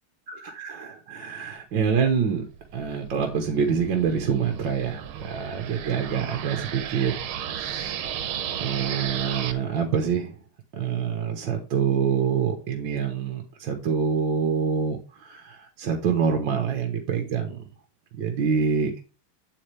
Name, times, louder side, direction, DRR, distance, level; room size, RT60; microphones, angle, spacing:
voice 1, 0.3-2.4 2.7-7.1 7.6-7.9 8.6-10.4 10.7-17.7 18.1-19.0, right 6 dB, 65° right, 3 dB, 1.9 m, -26 dB
sound 1, 2.2-9.5, right 9 dB, 80° right, 1.8 m, -34 dB
8.6 x 8.2 x 3.4 m, 0.32 s
omnidirectional pair, 2.3 m